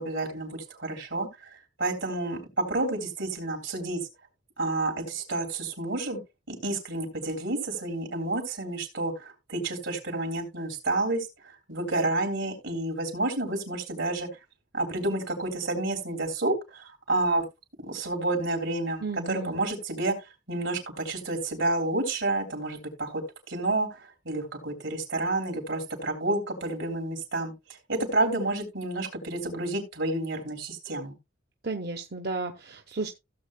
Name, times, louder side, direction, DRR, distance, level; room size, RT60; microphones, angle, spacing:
voice 1, 0.0-4.0 4.6-6.2 6.5-14.3 14.7-17.4 17.8-20.1 20.5-23.2 23.5-27.5 27.9-31.1, right 2 dB, 80° right, 3.4 m, -30 dB
voice 2, 19.0-19.6 31.6-33.1, right 3 dB, 55° right, 0.9 m, -33 dB
16.0 x 7.6 x 2.2 m
head